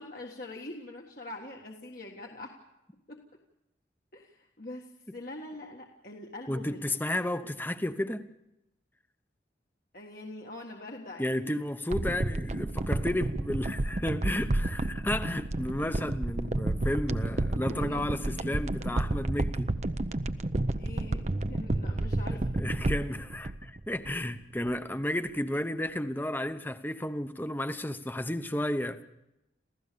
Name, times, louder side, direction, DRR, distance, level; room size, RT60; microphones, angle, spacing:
voice 1, 0.0-2.5 3.1-3.2 4.1-6.9 9.9-11.6 17.6-19.1 20.8-22.5, left 2 dB, 50° left, 1.7 m, -44 dB
voice 2, 6.5-8.3 11.2-19.7 22.6-29.1, left 1 dB, 10° left, 0.9 m, -32 dB
sound 1, 11.9-24.4 24.7-24.8, right 2 dB, 40° right, 0.7 m, -31 dB
28.0 x 15.5 x 6.9 m
head